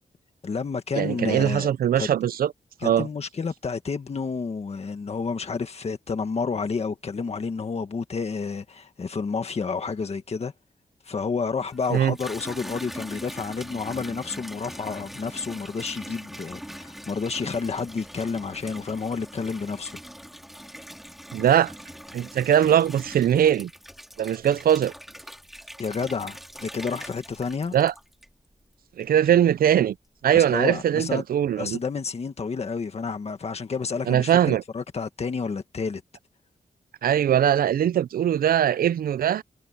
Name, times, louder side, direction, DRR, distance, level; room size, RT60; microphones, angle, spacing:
voice 1, 0.4-1.7 2.0-2.1 2.8-10.5 11.0-20.0 25.8-27.7 30.3-31.2 31.6-36.0, left 5 dB, 45° left, 1.7 m, -30 dB
voice 2, 0.9-2.5 2.8-3.1 11.9-12.1 21.3-21.7 22.1-23.7 24.2-24.9 27.7-27.9 29.0-30.0 30.2-31.8 34.1-34.6 37.0-39.4, right 10 dB, 85° right, 0.4 m, -21 dB
Water tap faucet / Bathtub (filling or washing), 11.6-28.5 29.0-29.6, equal, ahead, 2.2 m, -42 dB
wide cardioid pair, 135°, 15 cm